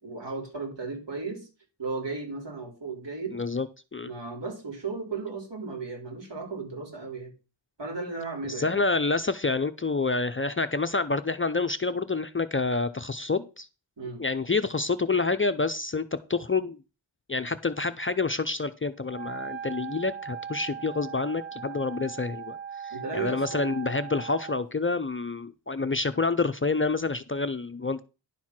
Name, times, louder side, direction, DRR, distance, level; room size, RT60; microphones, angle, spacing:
voice 1, 0.0-1.5 1.8-3.4 4.1-7.3 7.8-8.8 14.0-14.2 22.9-23.8, right 4 dB, 65° right, 2 dB, 3.6 m, -35 dB
voice 2, 3.3-3.7 3.9-4.1 8.5-13.7 14.2-16.8 17.3-22.6 22.8-28.0, left 3 dB, 25° left, 10 dB, 0.5 m, -28 dB
Wind instrument woodwind instrument, 19.0-24.7, right 7 dB, 25° right, 0.6 m, -39 dB
10.5 x 4.5 x 5.9 m, 0.31 s
wide cardioid pair, 110°, 46 cm